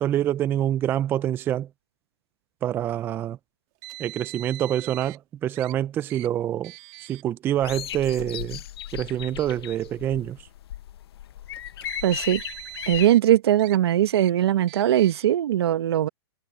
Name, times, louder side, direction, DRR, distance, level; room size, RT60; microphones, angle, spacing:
voice 1, 0.0-1.7 2.6-3.4 4.0-6.7 7.0-8.6 8.9-10.5, right 11 dB, 15° right, 0.4 m, -26 dB
Car, 3.8-5.2 5.6-5.7 6.1-6.3 6.6-7.2 8.0-8.2 9.2-9.3 11.6-13.2 13.6-13.8 14.1-14.3 14.7-15.3, right 24 dB, 35° right, 2.8 m, -42 dB
sound 1, 7.6-13.1, left 12 dB, 65° left, 1.0 m, -36 dB
voice 2, 12.0-12.4 12.9-16.1, right 11 dB, 65° right, 1.1 m, -20 dB
hypercardioid pair, 150°, 14 cm